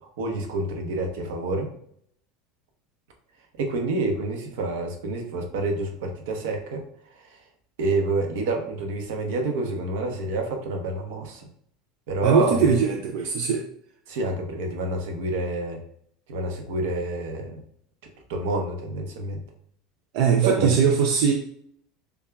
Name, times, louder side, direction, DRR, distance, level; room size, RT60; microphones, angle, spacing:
voice 1, 0.2-1.7 3.6-6.8 7.1-7.4 7.8-11.5 12.1-12.7 14.1-15.8 16.3-17.6 18.3-19.4 20.4-20.8, right 2 dB, 80° right, 3 dB, 0.9 m, -28 dB
voice 2, 12.2-13.7 20.1-21.3, right 6 dB, 60° right, 2 dB, 0.4 m, -21 dB
6.8 x 2.3 x 2.3 m, 0.67 s
cardioid pair, 170°, 0 cm